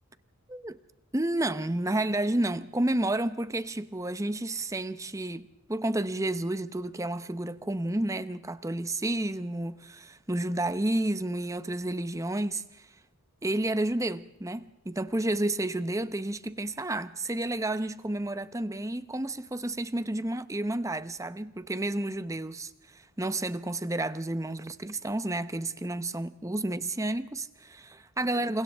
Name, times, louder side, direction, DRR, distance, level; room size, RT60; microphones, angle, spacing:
voice 1, 0.5-0.8 1.1-12.9 13.4-28.6, right 1 dB, 15° right, 0.8 m, -31 dB
29.5 x 27.0 x 3.5 m
head